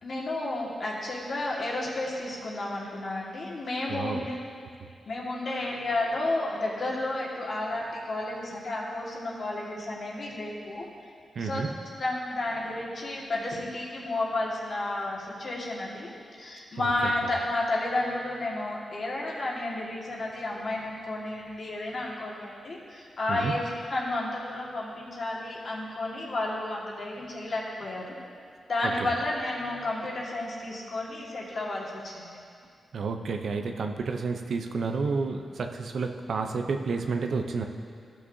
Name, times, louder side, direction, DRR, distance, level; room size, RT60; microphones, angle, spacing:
voice 1, 0.0-4.4 5.1-10.9 11.4-11.6 12.0-28.2 28.7-32.4, left 2 dB, 60° left, -4 dB, 1.8 m, -32 dB
voice 2, 3.9-4.2 11.3-11.7 16.8-17.3 23.3-23.5 28.8-29.1 32.9-37.7, right 4 dB, 70° right, 5 dB, 0.6 m, -30 dB
13.5 x 6.0 x 2.7 m, 2.3 s
cardioid pair, 65°, 0 cm